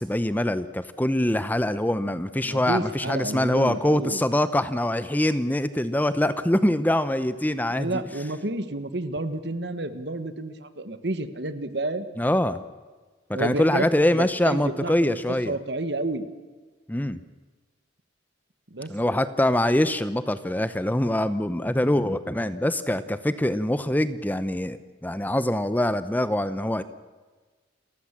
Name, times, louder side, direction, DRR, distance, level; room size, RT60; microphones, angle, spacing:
voice 1, 0.0-8.0 12.2-12.6 13.3-15.5 16.9-17.2 18.9-24.8 25.0-26.8, left 1 dB, 10° left, 13 dB, 0.7 m, -24 dB
voice 2, 2.4-4.2 7.7-12.1 13.3-15.2 15.4-16.3 18.7-18.9, right 2 dB, 65° right, 11 dB, 1.5 m, -30 dB
29.0 x 15.0 x 7.4 m, 1.4 s
head